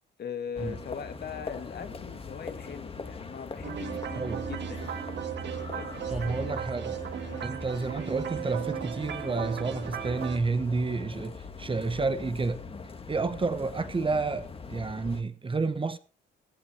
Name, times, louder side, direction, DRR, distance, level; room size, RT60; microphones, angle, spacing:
voice 1, 0.2-4.8 5.7-6.6 7.3-7.5, left 7 dB, 55° left, 1.8 m, -41 dB
sound 1, 0.5-15.2, left 4 dB, 30° left, 1.7 m, -42 dB
sound 2, 3.6-10.4, right 8 dB, 65° right, 1.9 m, -36 dB
voice 2, 4.1-4.5 6.1-7.0 7.4-12.6 13.1-16.0, right 3 dB, 25° right, 1.2 m, -30 dB
16.0 x 12.5 x 3.3 m
cardioid pair, 90°, 20 cm